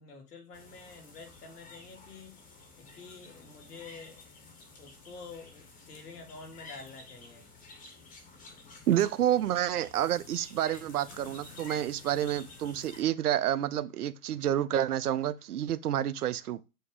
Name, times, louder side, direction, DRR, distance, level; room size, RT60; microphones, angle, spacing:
voice 1, 0.0-2.4 2.8-4.2 4.8-7.4, left 4 dB, 80° left, 2.5 m, -48 dB
sound 1, 0.5-13.0, left 3 dB, 15° left, 1.5 m, -51 dB
voice 2, 8.9-16.6, right 11 dB, 75° right, 0.7 m, -29 dB
7.8 x 2.9 x 4.8 m
hypercardioid pair, 135°, 46 cm